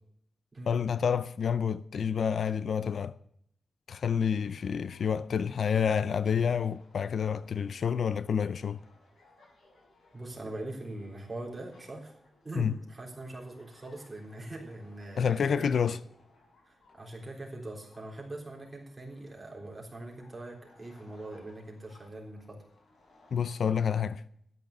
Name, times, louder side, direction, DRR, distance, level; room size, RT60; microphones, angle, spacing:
voice 1, 0.7-3.1 3.9-8.8 12.6-12.8 15.2-16.0 23.3-24.2, left 7 dB, 65° left, 0.4 m, -28 dB
sound 1, 4.3-23.7, left 2 dB, 85° left, 6.6 m, -63 dB
voice 2, 10.1-12.1 12.4-15.8 16.6-22.6, right 2 dB, 15° right, 3.7 m, -42 dB
13.5 x 9.5 x 6.6 m
wide cardioid pair, 180°, 0 cm